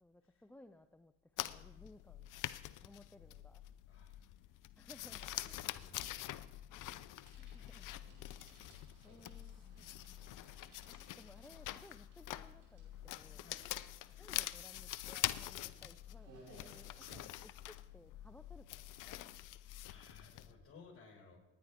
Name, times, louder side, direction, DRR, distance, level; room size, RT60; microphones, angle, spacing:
voice 1, 0.0-2.4 2.8-3.6 4.8-5.3 7.4-7.9 9.0-9.6 10.2-13.5 14.2-19.2, left 1 dB, 5° left, 9 dB, 0.3 m, -60 dB
sound 1, 1.4-20.5, left 14 dB, 60° left, 0.6 m, -45 dB
voice 2, 5.1-6.4 8.6-10.0 13.3-13.7 15.6-15.8 19.6-21.4, left 4 dB, 35° left, -1 dB, 5.7 m, -62 dB
Bicycle, 7.2-17.2, right 2 dB, 55° right, 5.5 m, -64 dB
26.5 x 10.0 x 3.6 m, 1.1 s
supercardioid pair, 90°, 37 cm